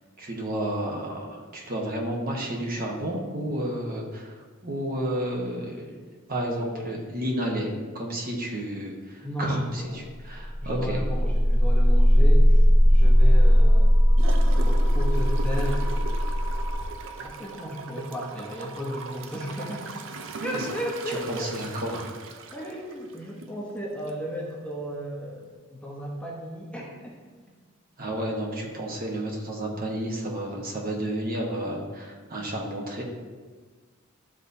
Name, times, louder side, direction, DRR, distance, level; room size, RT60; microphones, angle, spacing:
voice 1, 0.2-4.4 4.6-5.9 6.3-11.0 20.5-20.7 21.1-22.1 28.0-33.0, right 1 dB, 45° right, -1 dB, 1.2 m, -31 dB
voice 2, 6.3-7.0 9.2-10.1 10.6-14.0 14.6-15.9 17.2-20.0 20.4-21.6 22.5-27.2, equal, 5° left, -3 dB, 0.8 m, -34 dB
sound 1, 10.3-20.2, equal, 25° right, 2.0 m, -20 dB
Gurgling / Toilet flush, 14.2-23.6 24.1-24.2, right 3 dB, 60° right, 0.5 m, -39 dB
11.5 x 3.9 x 2.8 m, 1.4 s
head